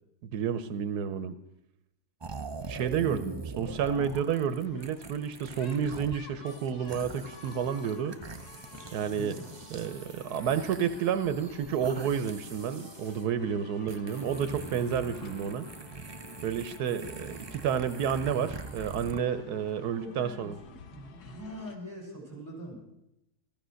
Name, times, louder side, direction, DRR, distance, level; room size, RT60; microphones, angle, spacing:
voice 1, 0.2-1.3 2.7-8.2 8.9-9.4 9.7-15.6 16.4-20.6, right 8 dB, 80° right, 11 dB, 1.3 m, -30 dB
sound 1, 2.2-6.2 6.5-13.2 13.9-19.2, right 4 dB, 40° right, 0.3 m, -43 dB
voice 2, 3.0-3.3 3.9-4.0 9.1-9.4 20.0-20.5 20.9-22.8, equal, 10° left, -2 dB, 6.7 m, -42 dB
sound 2, 3.6-21.8, left 6 dB, 80° left, 1.7 m, -51 dB
15.5 x 14.0 x 6.3 m, 0.83 s
omnidirectional pair, 1.7 m